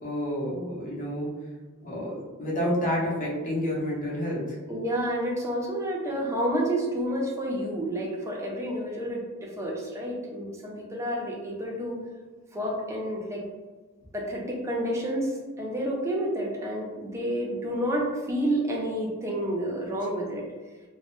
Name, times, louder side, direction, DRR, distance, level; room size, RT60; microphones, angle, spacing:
voice 1, 0.0-1.3 1.8-4.6, equal, 40° left, -5 dB, 0.7 m, -29 dB
voice 2, 4.7-12.0 12.5-13.4 14.1-20.4, right 1 dB, 15° right, -2 dB, 0.4 m, -29 dB
2.1 x 2.0 x 2.9 m, 1.3 s
head